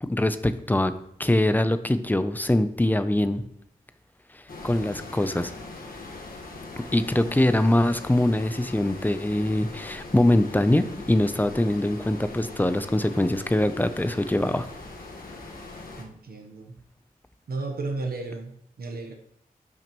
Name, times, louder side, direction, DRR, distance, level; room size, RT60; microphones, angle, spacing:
voice 1, 0.0-0.9 1.2-3.4 4.6-5.5 6.9-14.7, left 1 dB, 10° left, 11 dB, 0.5 m, -23 dB
sound 1, 4.5-16.0, left 3 dB, 75° left, 1.4 m, -41 dB
voice 2, 16.0-16.8 17.5-19.1, right 3 dB, 90° right, 3 dB, 1.0 m, -34 dB
12.0 x 6.0 x 3.0 m, 0.74 s
wide cardioid pair, 120°, 15 cm